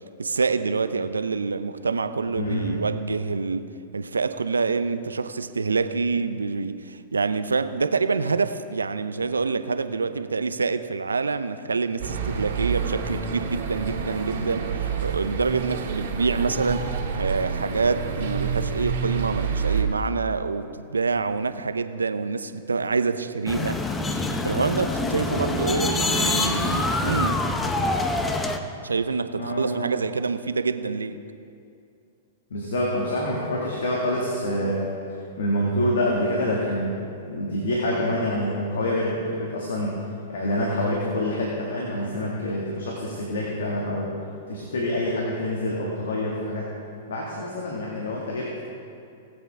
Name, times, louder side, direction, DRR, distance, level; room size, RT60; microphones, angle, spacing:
voice 1, 0.2-3.7 3.9-16.9 17.2-23.8 24.4-27.4 28.8-31.2, right 4 dB, 90° right, 11 dB, 0.5 m, -26 dB
voice 2, 2.4-2.8 29.4-29.9 32.5-34.9 35.4-40.0 40.3-44.1 44.5-46.7 47.1-48.6, left 1 dB, 75° left, -3 dB, 2.0 m, -26 dB
sound 1, 12.0-19.8, right 6 dB, 60° right, 2.0 m, -28 dB
sound 2, 23.5-28.6, left 2 dB, 15° left, 0.8 m, -25 dB
19.0 x 8.1 x 3.6 m, 2.5 s
hypercardioid pair, 110°, 0 cm